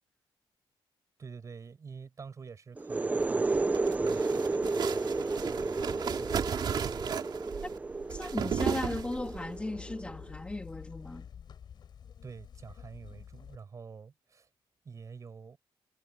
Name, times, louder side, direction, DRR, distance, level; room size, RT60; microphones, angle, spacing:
voice 1, 1.2-7.1 12.2-14.5 14.8-15.6, right 5 dB, 35° right, 7.4 m, -48 dB
sound 1, 2.8-10.3, right 3 dB, 15° right, 0.7 m, -32 dB
sound 2, 3.4-9.5, right 7 dB, 55° right, 2.9 m, -35 dB
voice 2, 8.0-11.3, left 2 dB, 10° left, 3.3 m, -36 dB
sound 3, 8.4-13.6, left 8 dB, 55° left, 4.9 m, -49 dB
cardioid pair, 135°, 9 cm